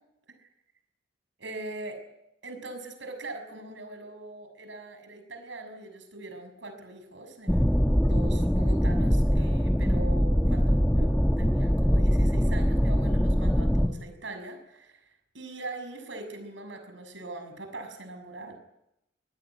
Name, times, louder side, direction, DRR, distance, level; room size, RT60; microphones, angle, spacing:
voice 1, 1.4-2.0 2.4-11.1 11.4-15.1 15.3-18.6, right 2 dB, 75° right, 7 dB, 6.6 m, -41 dB
sound 1, 7.5-13.9, equal, 5° left, 1.1 m, -23 dB
25.0 x 19.0 x 9.5 m, 0.86 s
head